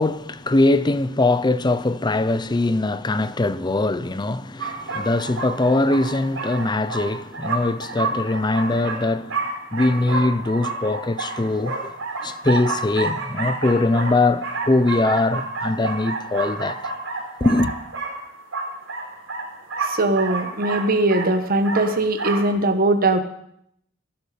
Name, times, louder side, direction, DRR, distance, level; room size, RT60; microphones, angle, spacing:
voice 1, 0.0-9.4 9.7-11.9 12.2-16.8 17.4-17.7, left 2 dB, 20° left, 0.6 m, -21 dB
sound 1, 4.6-22.5, right 3 dB, 75° right, 4.0 m, -30 dB
voice 2, 19.9-23.2, right 2 dB, 50° right, 1.2 m, -20 dB
18.0 x 10.5 x 5.1 m
head